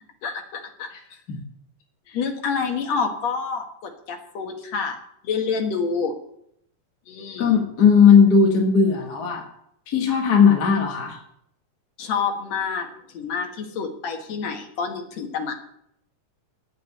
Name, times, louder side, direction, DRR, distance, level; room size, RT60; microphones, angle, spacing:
voice 1, 0.2-0.9 2.1-5.0 5.2-6.2 7.1-7.6 12.0-12.9 13.1-15.5, left 5 dB, 60° left, 3 dB, 2.5 m, -28 dB
voice 2, 7.4-9.4 9.9-11.2, left 6 dB, 40° left, 1 dB, 1.5 m, -17 dB
9.0 x 8.6 x 9.6 m, 0.74 s
omnidirectional pair, 3.7 m